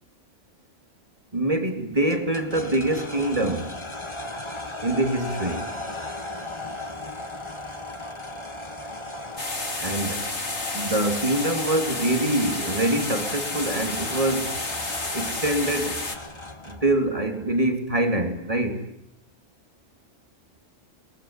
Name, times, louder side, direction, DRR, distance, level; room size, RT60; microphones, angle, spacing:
voice 1, 1.3-3.8 4.8-5.7 9.8-10.3 10.7-14.6 15.1-16.0 16.7-18.8, right 1 dB, 25° right, 5 dB, 3.4 m, -25 dB
sound 1, 2.1-16.9, left 1 dB, 25° left, 1.8 m, -36 dB
sound 2, 9.4-16.2, left 2 dB, 60° left, 3.5 m, -31 dB
26.5 x 22.5 x 9.9 m, 0.80 s
omnidirectional pair, 1.3 m